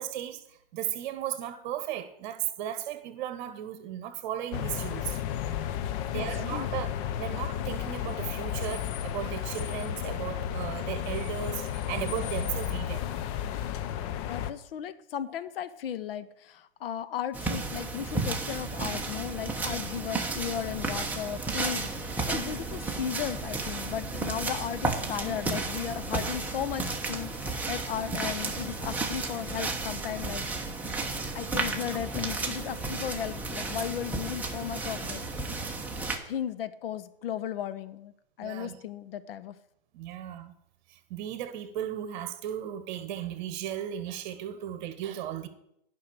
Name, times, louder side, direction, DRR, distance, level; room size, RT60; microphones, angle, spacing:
voice 1, 0.0-5.2 6.1-6.9 7.2-13.1 38.4-38.8 39.9-40.5 40.9-45.5, right 11 dB, 45° right, 1.3 m, -36 dB
sound 1, 4.5-14.5, left 10 dB, 30° left, 0.6 m, -33 dB
voice 2, 5.9-6.2 6.5-6.7 14.3-30.5 31.3-35.2 35.5-35.7 36.3-39.6, left 10 dB, 60° left, 0.9 m, -35 dB
sound 2, 17.3-36.2, right 3 dB, 5° right, 1.0 m, -33 dB
9.9 x 5.7 x 8.2 m
hypercardioid pair, 130°, 32 cm